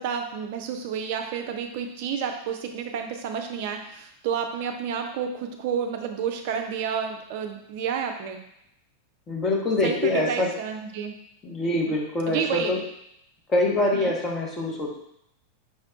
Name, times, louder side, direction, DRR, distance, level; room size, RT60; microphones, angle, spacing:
voice 1, 0.0-8.4 9.8-11.1 11.8-11.9 12.3-12.8 13.9-14.1, right 7 dB, 50° right, 4 dB, 0.4 m, -30 dB
voice 2, 9.3-10.5 11.4-12.8 13.5-14.9, left 2 dB, 20° left, -1 dB, 0.9 m, -25 dB
5.4 x 2.2 x 3.6 m, 0.78 s
figure-of-eight pair, 90°, 0 cm